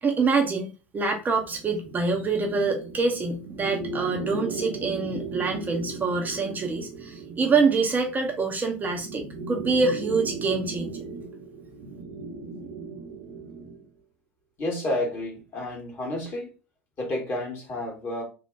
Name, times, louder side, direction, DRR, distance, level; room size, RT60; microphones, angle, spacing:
voice 1, 0.0-11.0, right 4 dB, 25° right, 0.7 m, -26 dB
sound 1, 1.4-13.8, right 4 dB, 65° right, 1.1 m, -37 dB
voice 2, 14.6-16.5 17.0-18.2, left 1 dB, 35° left, 1.8 m, -30 dB
3.3 x 2.3 x 3.9 m
hypercardioid pair, 75°, 7 cm